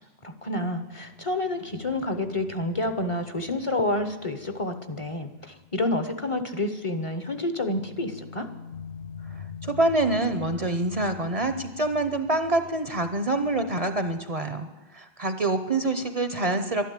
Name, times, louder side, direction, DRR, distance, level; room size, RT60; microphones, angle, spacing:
voice 1, 0.2-8.5, left 2 dB, 35° left, 8 dB, 0.9 m, -29 dB
sound 1, 0.7-6.1 6.4-6.5 7.7-14.3, left 7 dB, 80° left, 1.0 m, -45 dB
voice 2, 9.3-16.9, right 2 dB, 40° right, 8 dB, 0.7 m, -26 dB
12.0 x 11.5 x 8.2 m, 1.1 s
omnidirectional pair, 1.0 m